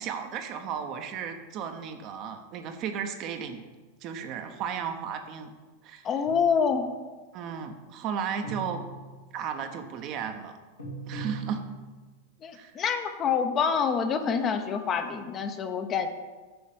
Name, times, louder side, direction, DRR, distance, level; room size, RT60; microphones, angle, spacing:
voice 1, 0.0-3.6 4.0-5.5 5.8-6.1 7.3-8.8 9.3-10.6 11.1-11.6 12.5-12.7, right 7 dB, 40° right, 6 dB, 0.8 m, -34 dB
voice 2, 6.0-6.9 12.4-16.1, left 6 dB, 30° left, 7 dB, 0.8 m, -26 dB
sound 1, 6.2-6.8 8.4-9.4 10.8-12.1, right 3 dB, 85° left, 3.0 m, -40 dB
7.9 x 5.2 x 7.1 m, 1.3 s
figure-of-eight pair, 90°, 0 cm